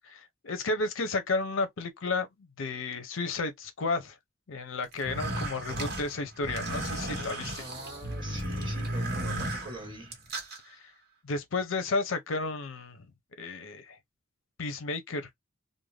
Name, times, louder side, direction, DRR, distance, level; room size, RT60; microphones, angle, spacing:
voice 1, 0.0-2.3 2.6-4.2 4.5-7.7 10.7-10.8 11.2-13.1 13.4-14.0 14.6-15.4, left 3 dB, 75° left, 0.6 m, -32 dB
sound 1, 4.9-10.6, right 1 dB, 50° right, 1.0 m, -34 dB
voice 2, 7.6-10.2, right 1 dB, 25° right, 1.2 m, -43 dB
2.5 x 2.1 x 3.1 m
head